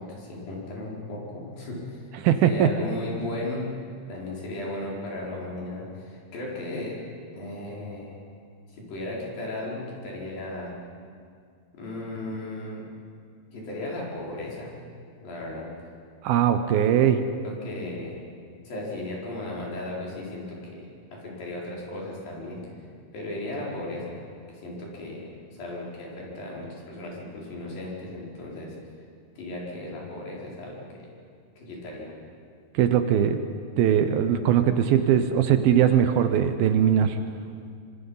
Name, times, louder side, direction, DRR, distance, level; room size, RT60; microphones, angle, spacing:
voice 1, 0.0-2.1 2.4-3.8 4.1-7.0 7.3-8.2 8.7-10.8 11.8-12.8 13.5-14.7 15.2-15.7 16.9-17.0 17.4-18.2 18.6-20.8 21.1-22.6 23.1-28.8 29.4-31.0 31.6-32.2, left 2 dB, 60° left, -4 dB, 6.1 m, -36 dB
voice 2, 2.2-2.7 16.2-17.2 32.7-33.4 33.8-37.2, right 9 dB, 75° right, 8 dB, 2.6 m, -20 dB
25.0 x 25.0 x 5.6 m, 2.2 s
omnidirectional pair, 4.6 m